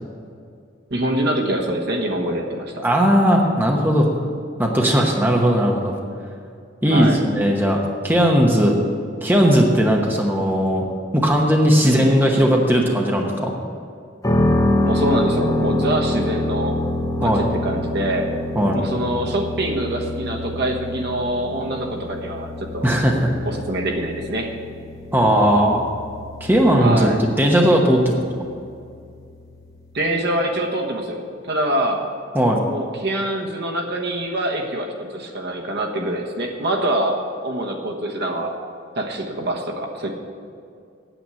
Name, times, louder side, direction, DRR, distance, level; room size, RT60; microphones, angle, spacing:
voice 1, 0.9-2.8 6.9-7.2 11.8-12.1 14.8-16.8 17.2-18.3 18.7-22.9 23.4-24.5 26.8-27.2 29.9-32.0 32.7-37.2 37.4-38.6 38.9-40.1, right 1 dB, 55° right, 1 dB, 1.3 m, -25 dB
voice 2, 2.8-4.1 4.6-5.9 6.8-7.8 8.0-8.8 9.2-10.8 11.1-13.5 17.2-17.4 18.6-18.8 22.8-23.1 25.1-25.8 26.4-28.2 32.3-32.6, equal, 10° right, 0 dB, 1.0 m, -17 dB
sound 1, 14.2-30.1, left 1 dB, 20° left, 1.0 m, -26 dB
9.0 x 8.0 x 8.3 m, 2.3 s
head